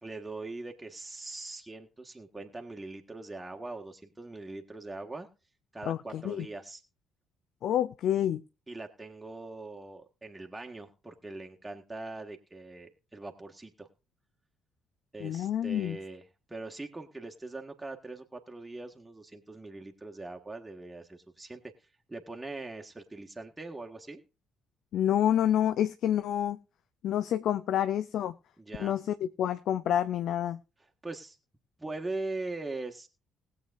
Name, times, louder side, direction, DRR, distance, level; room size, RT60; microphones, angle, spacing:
voice 1, 0.0-5.3 5.7-6.8 8.7-13.9 15.1-16.2 16.5-21.6 22.1-24.2 28.6-28.9 31.0-31.4 31.8-33.1, right 2 dB, 15° right, 2 dB, 1.6 m, -41 dB
voice 2, 5.9-6.5 7.6-8.4 15.2-16.0 24.9-26.6 27.0-28.3 28.8-30.6, left 10 dB, 55° left, 13 dB, 0.5 m, -28 dB
20.0 x 7.7 x 2.5 m, 0.31 s
figure-of-eight pair, 45°, 0 cm